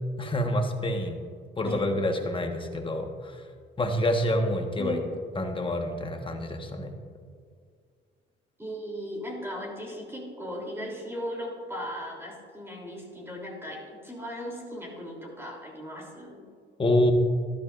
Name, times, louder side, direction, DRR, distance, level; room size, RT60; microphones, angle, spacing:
voice 1, 0.2-1.2 1.6-3.4 3.8-5.0 5.4-6.9 16.8-17.1, left 1 dB, 25° left, 4 dB, 1.4 m, -27 dB
voice 2, 8.6-16.4, equal, 10° right, -2 dB, 3.1 m, -37 dB
13.5 x 12.5 x 2.5 m, 2.1 s
cardioid pair, 90°, 20 cm